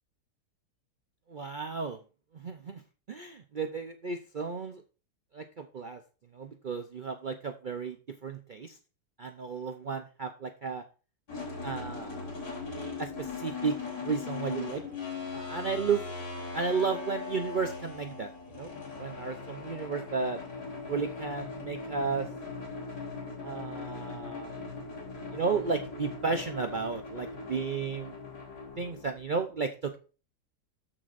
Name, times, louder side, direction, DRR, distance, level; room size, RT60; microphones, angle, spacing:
voice 1, 1.3-2.0 2.3-2.8 3.1-4.8 5.3-6.0 6.3-8.8 9.2-10.8 11.6-12.3 13.0-14.8 15.3-16.1 16.5-18.7 19.0-20.4 20.9-22.3 23.4-24.6 25.3-28.2 28.8-30.0, right 5 dB, 85° right, 6 dB, 0.4 m, -33 dB
sound 1, 11.3-29.2, left 4 dB, 65° left, 3.9 m, -40 dB
13.5 x 5.8 x 2.5 m, 0.34 s
omnidirectional pair, 1.8 m